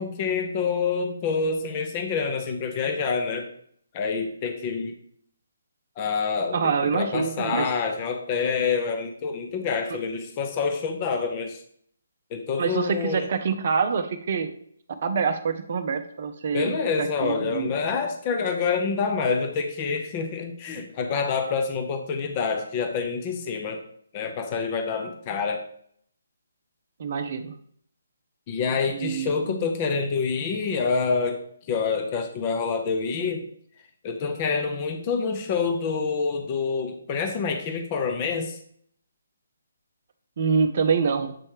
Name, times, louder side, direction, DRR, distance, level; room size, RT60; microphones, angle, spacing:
voice 1, 0.0-3.5 3.9-4.9 6.0-11.6 12.3-13.3 16.5-23.8 24.1-25.7 28.5-31.4 31.7-33.4 34.0-38.6, left 5 dB, 25° left, 6 dB, 0.7 m, -27 dB
voice 2, 6.5-7.7 9.9-10.0 12.6-14.5 15.0-17.7 27.0-27.6 28.9-29.7 40.4-41.4, right 5 dB, 45° right, 7 dB, 0.6 m, -26 dB
7.6 x 3.2 x 4.7 m, 0.64 s
figure-of-eight pair, 140°, 0 cm